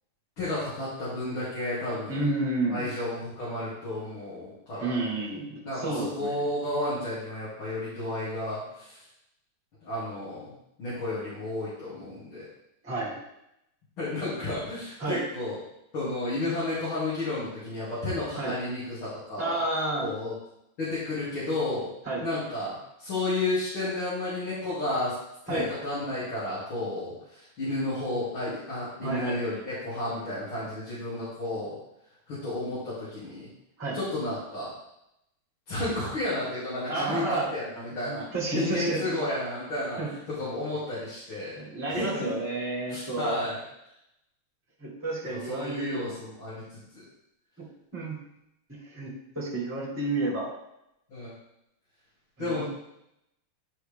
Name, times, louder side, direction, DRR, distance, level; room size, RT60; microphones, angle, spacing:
voice 1, 0.4-2.3 2.7-5.1 5.6-9.1 9.8-12.5 14.0-15.6 15.9-19.6 20.0-20.3 20.8-21.9 22.2-25.1 25.4-31.8 32.3-33.5 33.9-34.7 35.7-38.2 38.5-41.6 41.9-42.3 42.9-43.6 45.2-46.8 51.1-51.3 52.4-52.6, left 2 dB, 70° left, -12 dB, 3.4 m, -32 dB
voice 2, 2.1-2.8 4.8-6.4 12.8-13.2 15.0-15.2 18.4-18.5 19.4-20.1 22.0-22.2 25.5-25.7 29.0-29.4 33.8-34.0 36.9-37.5 38.1-39.1 40.0-40.1 41.6-43.4 44.8-46.0 47.6-47.7 47.9-48.2 48.7-50.5 52.4-52.6, right 2 dB, 5° right, -8 dB, 2.4 m, -30 dB
11.0 x 4.6 x 3.5 m, 0.82 s
omnidirectional pair, 2.4 m